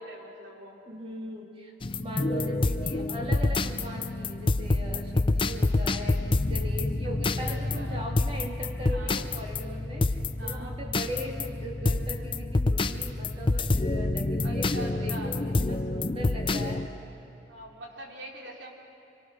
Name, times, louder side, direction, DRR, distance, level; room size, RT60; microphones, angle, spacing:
voice 1, 0.0-0.8 7.4-8.0 8.9-9.2 10.4-10.7 14.4-15.3 17.5-18.7, right 2 dB, 90° right, 0 dB, 3.4 m, -44 dB
voice 2, 0.9-1.7 2.0-16.9, equal, 30° right, 1 dB, 1.9 m, -39 dB
sound 1, 1.8-16.9, left 2 dB, 30° left, 0.6 m, -28 dB
25.0 x 23.5 x 6.2 m, 2.7 s
head